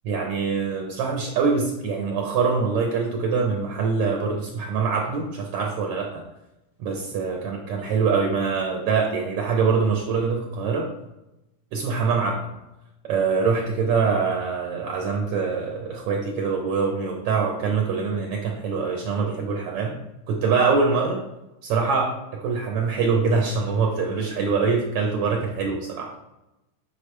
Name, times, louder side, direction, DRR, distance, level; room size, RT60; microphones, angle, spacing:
voice 1, 0.1-6.2 6.8-10.9 11.7-12.4 13.0-20.0 20.3-21.2 21.6-26.1, right 5 dB, 75° right, 1 dB, 1.3 m, -24 dB
8.4 x 5.1 x 3.2 m, 0.94 s
omnidirectional pair, 3.7 m